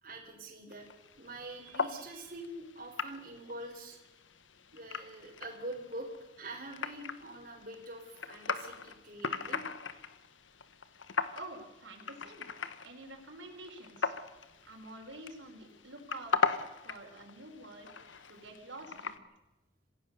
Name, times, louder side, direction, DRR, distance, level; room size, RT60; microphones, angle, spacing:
voice 1, 0.0-0.9 1.1-4.0 4.7-6.1 6.4-9.6, right 1 dB, 45° right, -1 dB, 4.3 m, -45 dB
sound 1, 0.7-19.2, left 5 dB, 85° left, 1.4 m, -39 dB
voice 2, 11.3-12.5 12.8-14.1 14.7-16.5 16.8-17.9 18.3-19.2, right 2 dB, 80° right, 1 dB, 4.9 m, -48 dB
26.5 x 16.5 x 6.8 m, 1.0 s
head